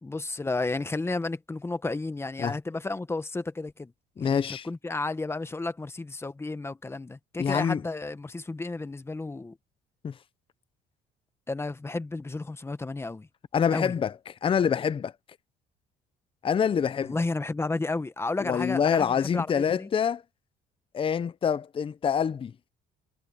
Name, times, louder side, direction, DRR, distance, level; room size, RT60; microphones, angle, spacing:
voice 1, 0.0-3.9 4.2-9.6 11.5-13.3 13.7-13.9 17.0-19.9, left 3 dB, 15° left, 1.2 m, -32 dB
voice 2, 4.2-4.7 7.4-7.8 10.0-10.1 13.5-15.1 16.4-17.2 18.4-20.2 20.9-22.5, left 7 dB, 30° left, 0.7 m, -26 dB
cardioid pair, 110°, 17 cm